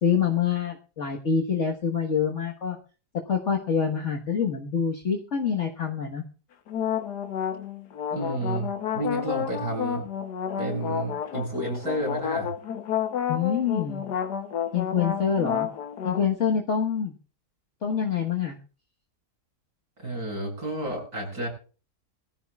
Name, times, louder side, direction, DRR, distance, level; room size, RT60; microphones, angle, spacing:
voice 1, 0.0-2.8 3.3-6.2 13.3-14.0 14.7-15.7 16.0-17.1 17.8-18.6, left 7 dB, 50° left, 1 dB, 1.7 m, -26 dB
sound 1, 6.7-16.3, left 8 dB, 90° left, 1.6 m, -30 dB
voice 2, 8.1-10.1 10.6-12.5 20.0-21.5, right 1 dB, 75° right, 0 dB, 8.4 m, -31 dB
22.5 x 14.0 x 2.4 m, 0.36 s
omnidirectional pair, 1.7 m